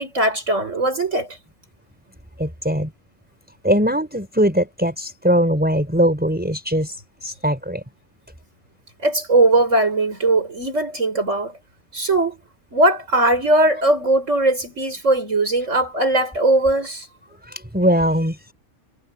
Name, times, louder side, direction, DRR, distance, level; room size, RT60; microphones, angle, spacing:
voice 1, 0.0-1.4 9.0-11.5 11.9-12.4 12.7-17.1, right 2 dB, 65° right, 5.6 m, -19 dB
voice 2, 2.4-2.9 3.6-7.0 7.2-7.8 17.4-18.5, equal, 5° right, 5.0 m, -20 dB
omnidirectional pair, 1.4 m